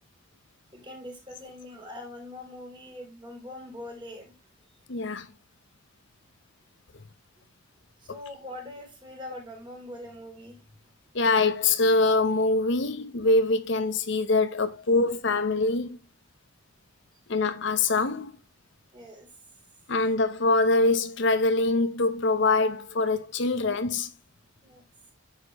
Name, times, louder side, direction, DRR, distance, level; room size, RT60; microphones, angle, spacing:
voice 1, 0.7-4.3 8.0-10.6 17.8-17.9 18.9-19.3 24.6-24.8, left 1 dB, 25° right, 3.2 m, -42 dB
voice 2, 4.9-5.3 11.1-16.0 17.3-18.3 19.9-24.1, left 3 dB, 60° left, 0.8 m, -24 dB
9.6 x 6.7 x 3.0 m
head